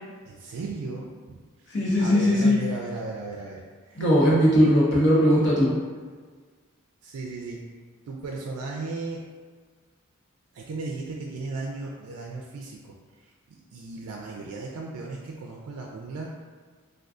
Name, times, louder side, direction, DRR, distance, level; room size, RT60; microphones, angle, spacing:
voice 1, 0.2-1.7 2.0-4.1 4.6-4.7 7.0-7.6 8.1-9.2 10.5-12.9 13.2-16.3, right 3 dB, 85° right, -1 dB, 0.3 m, -36 dB
voice 2, 1.7-2.6 4.0-5.7, equal, 55° left, -6 dB, 0.9 m, -19 dB
3.6 x 2.3 x 2.4 m, 1.5 s
head